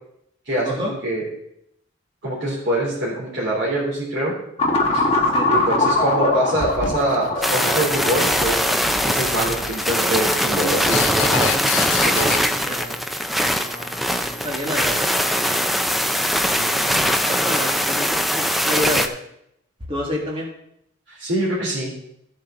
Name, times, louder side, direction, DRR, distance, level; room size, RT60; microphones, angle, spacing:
voice 1, 0.4-1.2 2.2-4.3 4.9-5.0 5.5-11.5 12.0-12.3 16.5-16.9 21.1-21.9, right 1 dB, 60° right, -6 dB, 3.2 m, -24 dB
sound 1, 4.6-9.6, left 2 dB, 30° left, 1.3 m, -22 dB
voice 2, 5.0-5.9 12.6-13.0 13.6-15.7 16.9-19.1 19.9-20.5, left 1 dB, 25° right, -3 dB, 2.0 m, -30 dB
sound 2, 6.6-12.4, left 6 dB, 75° left, 0.9 m, -29 dB
sound 3, 7.4-19.1, equal, ahead, 0.4 m, -21 dB
14.5 x 7.6 x 3.8 m, 0.76 s
head